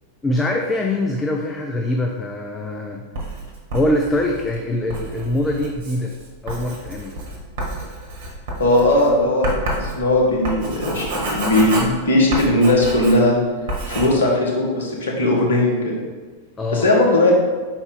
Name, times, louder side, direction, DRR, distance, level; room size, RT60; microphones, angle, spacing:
voice 1, 0.2-3.0 3.7-6.1 6.4-7.2 16.6-16.9, left 1 dB, 15° left, 1 dB, 0.5 m, -23 dB
Writing, 3.1-13.4 13.7-14.1, right 1 dB, 55° right, 1.4 m, -29 dB
voice 2, 8.6-13.4 13.9-15.9 16.7-17.3, left 1 dB, 65° left, -3 dB, 1.5 m, -18 dB
5.4 x 4.3 x 4.0 m, 1.4 s
figure-of-eight pair, 90°, 0 cm